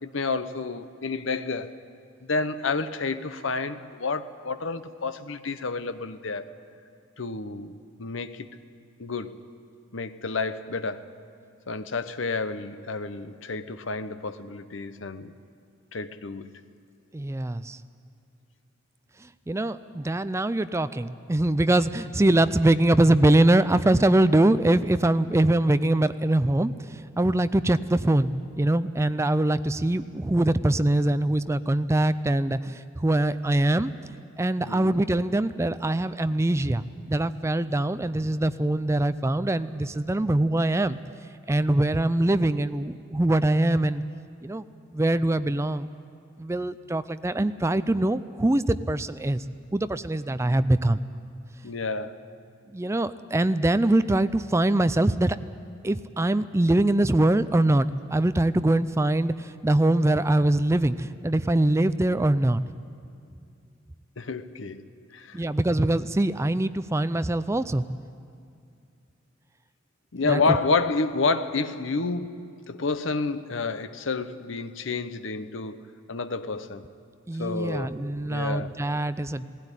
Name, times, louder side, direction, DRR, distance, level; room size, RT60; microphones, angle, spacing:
voice 1, 0.0-1.8 2.2-6.5 7.2-8.5 9.0-9.4 9.9-11.1 11.7-15.3 15.9-16.6 34.7-35.0 51.6-52.2 64.2-65.4 70.1-72.4 72.7-76.8 77.4-78.8, left 4 dB, 65° left, 11 dB, 0.8 m, -30 dB
voice 2, 17.1-17.8 19.5-33.9 34.4-41.0 41.5-44.0 44.4-44.6 44.9-45.9 46.4-49.4 49.7-51.0 52.7-55.4 55.8-62.6 65.3-67.8 70.2-70.6 77.3-79.5, right 1 dB, 15° right, 13 dB, 0.4 m, -23 dB
18.0 x 16.0 x 9.9 m, 2.5 s
head